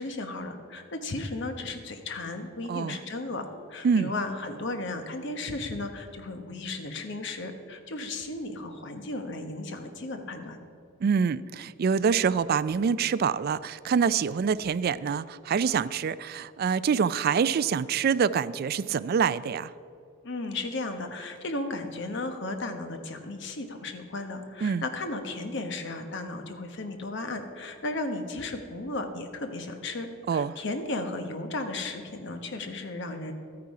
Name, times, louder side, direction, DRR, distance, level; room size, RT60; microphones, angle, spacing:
voice 1, 0.0-10.6 20.2-33.3, left 2 dB, 60° left, 6 dB, 1.1 m, -35 dB
voice 2, 11.0-19.7 24.6-24.8 30.3-30.6, right 6 dB, 50° right, 16 dB, 0.3 m, -26 dB
13.0 x 9.5 x 4.8 m, 2.5 s
head